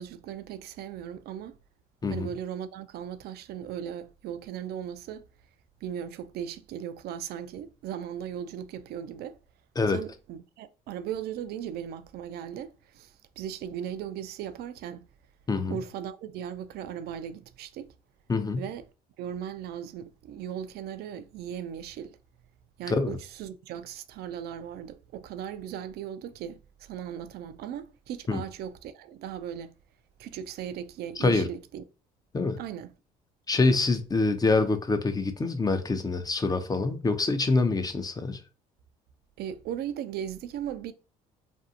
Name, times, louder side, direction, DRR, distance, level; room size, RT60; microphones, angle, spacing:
voice 1, 0.0-1.6 2.1-5.3 5.8-9.4 9.9-15.1 15.7-17.9 18.6-18.8 19.2-22.2 22.8-29.8 30.2-31.8 32.6-32.9 39.4-40.9, right 9 dB, 60° right, 0.4 m, -37 dB
voice 2, 15.5-15.8 18.3-18.6 22.9-23.2 28.3-28.4 31.2-31.5 32.3-32.6 33.5-38.4, left 3 dB, 20° left, 0.5 m, -25 dB
2.5 x 2.3 x 2.6 m
hypercardioid pair, 65°, 19 cm